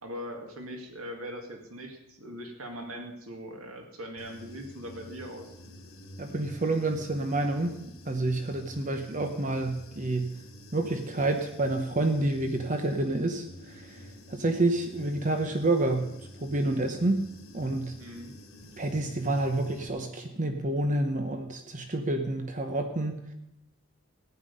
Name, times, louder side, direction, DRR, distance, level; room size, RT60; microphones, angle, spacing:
voice 1, 0.0-5.5 18.0-18.3, equal, 85° right, 3 dB, 2.2 m, -41 dB
Human voice / Buzz, 4.2-19.9, left 1 dB, 85° left, 3.0 m, -49 dB
voice 2, 6.2-7.7 8.1-10.4 10.7-16.1 16.4-17.2 17.5-18.0 18.8-23.3, right 2 dB, 35° right, 6 dB, 0.9 m, -28 dB
15.0 x 10.5 x 5.4 m, 0.83 s
head